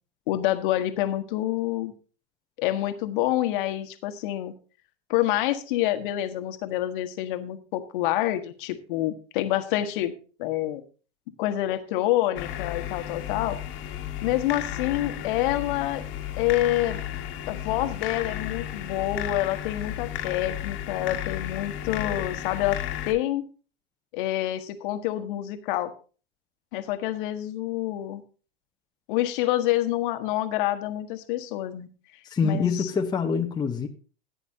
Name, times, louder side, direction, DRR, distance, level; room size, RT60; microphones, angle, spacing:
voice 1, 0.3-1.9 2.6-4.5 5.1-10.1 10.4-10.8 11.4-13.6 14.2-16.0 16.4-17.0 17.5-22.8 23.1-23.4 24.1-25.9 26.7-28.2 29.1-31.9 32.4-32.9, left 14 dB, 55° left, 9 dB, 1.3 m, -27 dB
sound 1, 12.4-23.1, left 12 dB, 40° left, 1.5 m, -33 dB
voice 2, 32.2-33.9, left 5 dB, 15° left, 3 dB, 0.9 m, -25 dB
15.0 x 9.2 x 2.7 m, 0.36 s
hypercardioid pair, 110°, 32 cm